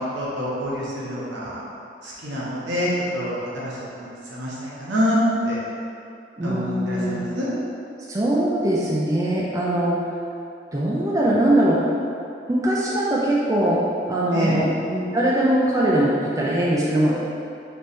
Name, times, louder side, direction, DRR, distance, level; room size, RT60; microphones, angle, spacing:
voice 1, 0.0-1.5 2.0-5.2 5.4-5.6 6.4-7.5 14.3-14.6, equal, 75° right, -7 dB, 1.1 m, -27 dB
voice 2, 6.4-7.2 8.1-10.0 10.7-11.8 12.5-13.8 14.1-17.2, right 1 dB, 20° right, -6 dB, 0.4 m, -21 dB
3.4 x 3.2 x 4.1 m, 2.5 s
head